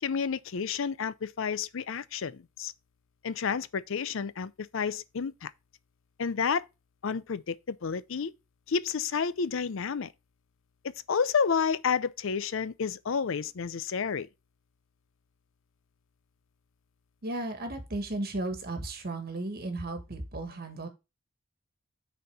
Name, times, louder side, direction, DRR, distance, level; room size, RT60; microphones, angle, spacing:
voice 1, 0.0-2.7 3.2-5.5 6.2-6.6 7.0-8.3 8.7-10.1 10.8-14.3, left 6 dB, 65° left, 0.5 m, -30 dB
voice 2, 17.2-20.9, right 2 dB, 50° right, 1.6 m, -35 dB
6.5 x 4.2 x 5.6 m
head